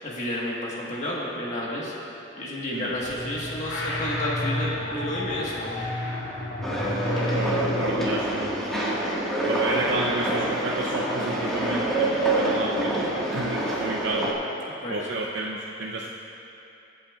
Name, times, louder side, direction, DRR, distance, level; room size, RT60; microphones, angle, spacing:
voice 1, 0.0-1.9 2.4-5.8 14.8-15.1, left 1 dB, 40° left, -5 dB, 1.5 m, -31 dB
sound 1, 2.9-8.5, left 1 dB, 85° left, 2.1 m, -31 dB
sound 2, 6.6-14.3, right 1 dB, ahead, 1.7 m, -26 dB
voice 2, 7.2-9.0 9.5-14.3 14.9-16.1, right 2 dB, 65° right, -3 dB, 0.7 m, -31 dB
23.5 x 8.7 x 2.4 m, 2.8 s
head